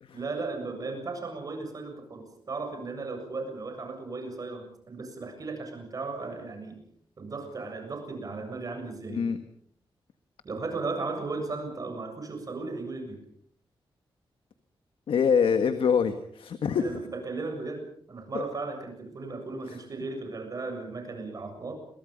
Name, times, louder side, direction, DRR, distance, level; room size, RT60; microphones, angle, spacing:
voice 1, 0.1-6.8 7.2-9.2 10.4-13.2 16.8-21.7, right 3 dB, 40° right, 5 dB, 7.4 m, -36 dB
voice 2, 15.1-17.0 18.3-18.5 19.7-19.8, left 6 dB, 80° left, 9 dB, 1.7 m, -25 dB
30.0 x 23.0 x 5.4 m, 0.63 s
wide cardioid pair, 145°, 9 cm